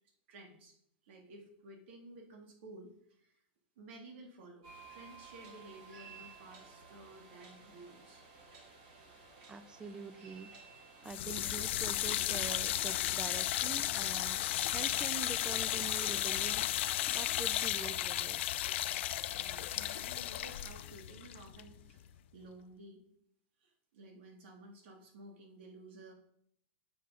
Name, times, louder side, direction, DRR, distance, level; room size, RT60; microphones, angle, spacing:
voice 1, 0.3-0.7 1.0-3.4 3.8-8.2 19.3-22.1 22.3-23.0 23.6-26.1, right 2 dB, 65° right, 2 dB, 2.4 m, -54 dB
sound 1, 4.6-12.1, right 4 dB, 50° right, 3.8 m, -55 dB
voice 2, 9.5-10.5 11.0-16.7 17.1-18.6, right 4 dB, 10° right, 14 dB, 0.5 m, -45 dB
sound 2, 11.1-22.2, left 13 dB, 70° left, 0.5 m, -34 dB
7.8 x 6.8 x 5.1 m, 0.71 s
supercardioid pair, 140°, 7 cm